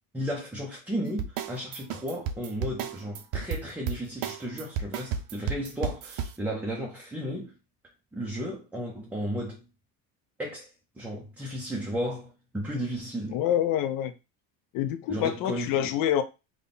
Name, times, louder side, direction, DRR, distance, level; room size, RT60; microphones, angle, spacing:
voice 1, 0.1-7.5 8.1-9.6 10.4-13.4 15.1-15.9, equal, 5° right, 0.5 m, -34 dB
sound 1, 1.2-6.3, right 7 dB, 60° right, 0.7 m, -32 dB
voice 2, 13.3-14.1 14.7-16.2, left 10 dB, 55° left, 0.6 m, -26 dB
3.6 x 2.3 x 3.8 m
cardioid pair, 135°, 40 cm